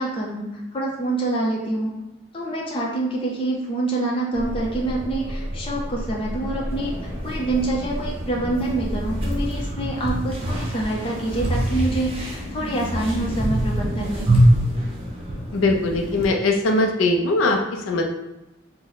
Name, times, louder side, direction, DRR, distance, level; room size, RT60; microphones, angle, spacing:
voice 1, 0.0-1.9 2.3-6.9 7.2-14.3, right 2 dB, 25° left, -2 dB, 0.5 m, -26 dB
sound 1, 4.3-9.5, equal, 55° right, 1.0 m, -32 dB
sound 2, 6.7-16.3, equal, 30° right, 0.6 m, -25 dB
voice 2, 15.5-18.0, left 2 dB, 85° left, 3 dB, 0.4 m, -21 dB
3.0 x 2.1 x 3.8 m, 0.99 s
head